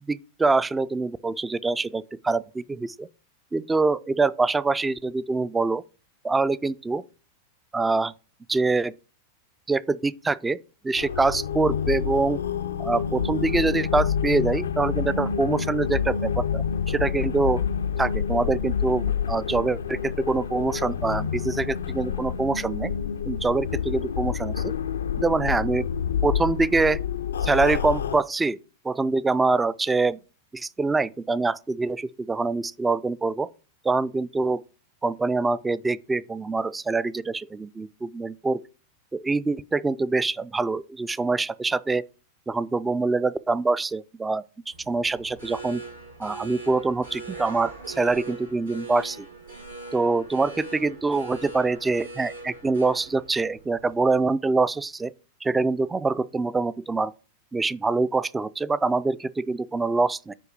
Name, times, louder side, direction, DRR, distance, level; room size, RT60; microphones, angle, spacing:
voice 1, 0.1-3.1 3.5-5.8 6.2-7.0 7.7-8.1 8.5-8.9 9.7-10.6 10.8-12.4 12.8-17.6 18.0-22.9 23.3-24.7 25.2-25.9 26.2-27.0 27.4-28.6 28.8-30.2 30.5-33.5 33.8-34.6 35.0-38.6 39.1-42.0 42.5-45.8 46.2-49.3 49.9-55.1 55.4-57.1 57.5-60.3, right 3 dB, 10° right, 0.3 m, -25 dB
sound 1, 11.0-28.2, left 7 dB, 70° left, 0.4 m, -28 dB
sound 2, 44.7-54.3, right 3 dB, 85° right, 4.2 m, -41 dB
9.1 x 3.2 x 5.9 m
figure-of-eight pair, 90°, 0 cm